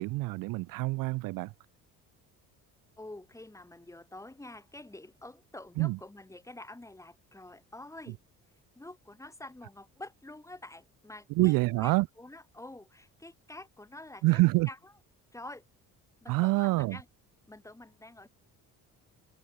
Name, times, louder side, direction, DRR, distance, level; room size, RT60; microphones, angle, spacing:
voice 1, 0.0-1.5 5.8-6.0 11.3-12.1 14.2-14.7 16.3-17.0, right 21 dB, 70° right, 0.5 m, -26 dB
voice 2, 3.0-8.2 8.7-14.4 14.7-14.9 15.3-15.6 16.2-17.1 17.5-18.3, left 2 dB, 10° left, 7.8 m, -47 dB
cardioid pair, 130°, 35 cm